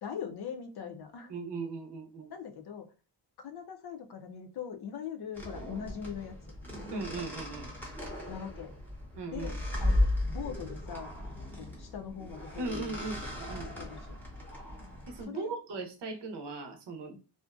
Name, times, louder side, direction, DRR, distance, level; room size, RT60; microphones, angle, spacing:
voice 1, 0.0-1.3 2.3-2.9 3.4-6.4 8.3-8.7 9.3-11.1 11.6-12.9 13.2-13.3 13.8-14.0 15.3-15.5 17.1-17.2, left 7 dB, 60° left, 0.5 m, -41 dB
voice 2, 1.3-2.3 6.9-7.7 9.2-9.6 12.6-13.7 15.1-17.2, right 3 dB, 65° right, 0.7 m, -38 dB
sound 1, 5.3-15.2, left 1 dB, 5° left, 0.7 m, -35 dB
2.5 x 2.1 x 2.4 m
wide cardioid pair, 135°, 44 cm